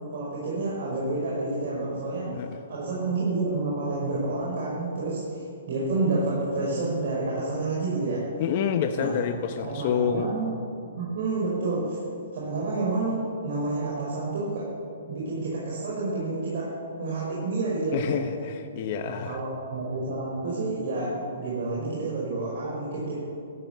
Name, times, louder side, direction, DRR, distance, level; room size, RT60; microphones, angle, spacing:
voice 1, 0.1-2.3 2.7-8.3 8.9-9.1 9.6-10.5 11.0-12.0 12.3-14.7 15.1-18.2 19.0-23.2, right 3 dB, 55° right, -6 dB, 5.2 m, -29 dB
voice 2, 2.3-2.6 8.4-10.3 17.9-19.4, left 8 dB, 40° left, 6 dB, 0.9 m, -28 dB
14.5 x 12.0 x 8.3 m, 2.6 s
hypercardioid pair, 150°, 0 cm